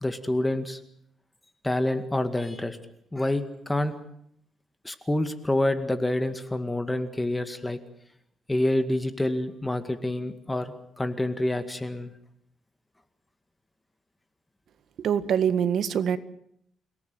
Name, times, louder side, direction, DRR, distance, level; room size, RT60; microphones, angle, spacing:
voice 1, 0.0-0.8 1.6-2.8 3.1-3.9 4.8-7.8 8.5-12.1, left 1 dB, 10° left, 9 dB, 2.1 m, -27 dB
voice 2, 15.0-16.2, right 8 dB, 65° right, 12 dB, 1.7 m, -24 dB
29.5 x 18.0 x 7.9 m, 0.71 s
cardioid pair, 115°, 0 cm